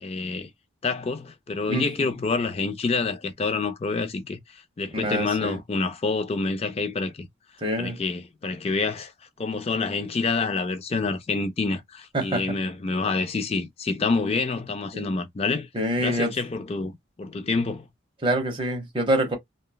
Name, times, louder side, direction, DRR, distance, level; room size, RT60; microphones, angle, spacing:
voice 1, 0.0-0.5 0.8-7.3 7.8-9.1 9.4-15.7 16.0-16.9 17.2-17.9, left 4 dB, 30° left, 0.4 m, -27 dB
voice 2, 4.9-5.6 7.6-8.0 12.1-12.4 14.9-15.1 15.7-16.3 18.2-19.4, right 1 dB, 25° right, 0.9 m, -25 dB
3.0 x 2.3 x 2.2 m
head